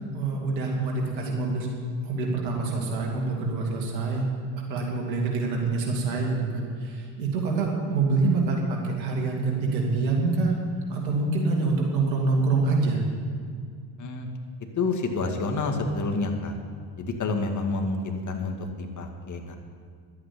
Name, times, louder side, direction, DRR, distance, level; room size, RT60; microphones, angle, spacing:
voice 1, 0.0-1.7 2.0-4.3 4.7-10.6 10.9-13.0, right 3 dB, 90° right, -1 dB, 2.8 m, -26 dB
voice 2, 14.8-16.5 17.0-19.6, left 3 dB, 35° left, 3 dB, 2.2 m, -28 dB
11.5 x 8.7 x 8.6 m, 2.2 s
hypercardioid pair, 75°, 49 cm